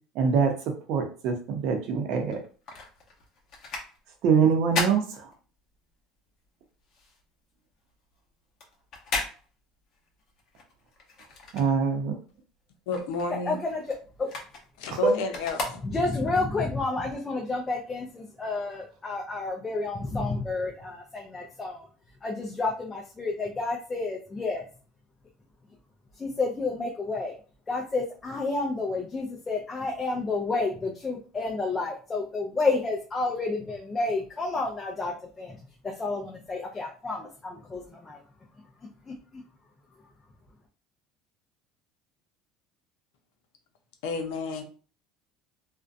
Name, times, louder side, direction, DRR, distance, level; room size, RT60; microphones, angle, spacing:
voice 1, 0.2-0.5 0.9-2.4 4.2-5.3 11.5-12.1, right 6 dB, 60° right, 4 dB, 0.6 m, -24 dB
sound 1, 2.2-5.9 6.3-12.3 12.6-16.4 16.9-17.0, left 3 dB, 45° left, 0.7 m, -37 dB
voice 2, 12.9-13.6 14.8-15.8 44.0-44.6, left 4 dB, 85° left, 5 dB, 0.6 m, -31 dB
voice 3, 13.5-13.8 14.2-14.3 15.8-21.9 22.2-24.7 26.1-27.4 27.7-38.2 39.1-39.4, left 3 dB, 20° left, 0 dB, 0.4 m, -30 dB
2.5 x 2.1 x 2.5 m, 0.37 s
cardioid pair, 145°, 0 cm